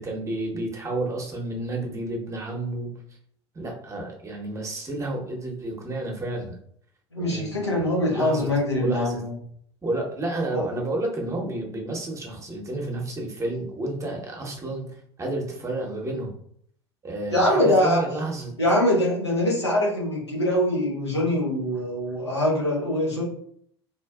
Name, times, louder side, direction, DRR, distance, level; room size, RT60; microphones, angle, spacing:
voice 1, 0.0-2.9 3.5-6.6 7.2-8.5 8.7-9.2 9.8-16.4 17.0-18.5, right 2 dB, 20° right, 0 dB, 0.9 m, -31 dB
voice 2, 7.1-9.3 10.5-10.6 17.3-18.0 18.6-23.2, left 1 dB, 90° left, -3 dB, 0.9 m, -23 dB
4.0 x 2.5 x 2.3 m, 0.65 s
figure-of-eight pair, 65°, 14 cm